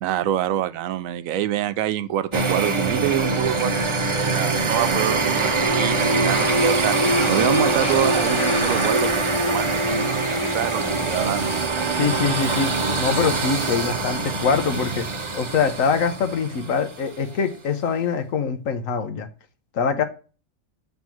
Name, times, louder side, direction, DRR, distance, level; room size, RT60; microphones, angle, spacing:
voice 1, 0.0-11.5, right 12 dB, 85° right, 1.0 m, -26 dB
sound 1, 2.3-17.1, right 3 dB, 30° right, 0.5 m, -23 dB
sound 2, 6.3-11.7, left 4 dB, 45° left, 1.1 m, -34 dB
voice 2, 11.9-12.7 13.0-15.1 15.3-19.3 19.7-20.0, left 5 dB, 75° left, 1.3 m, -23 dB
7.3 x 3.5 x 6.0 m
omnidirectional pair, 1.4 m